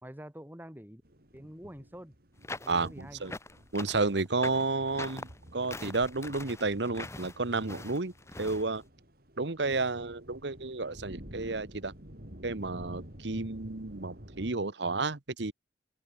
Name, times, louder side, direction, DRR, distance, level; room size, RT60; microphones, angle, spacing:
voice 1, 0.0-1.0 1.3-2.1 2.6-3.2, equal, 10° right, 2.1 m, -46 dB
sound 1, 1.0-14.5, equal, 55° right, 5.0 m, -51 dB
sound 2, 2.4-8.6, left 2 dB, 15° left, 1.6 m, -43 dB
voice 2, 2.7-3.3 3.7-8.1 8.4-8.8 9.4-11.9 12.4-15.5, right 3 dB, 70° right, 1.3 m, -31 dB
open air
head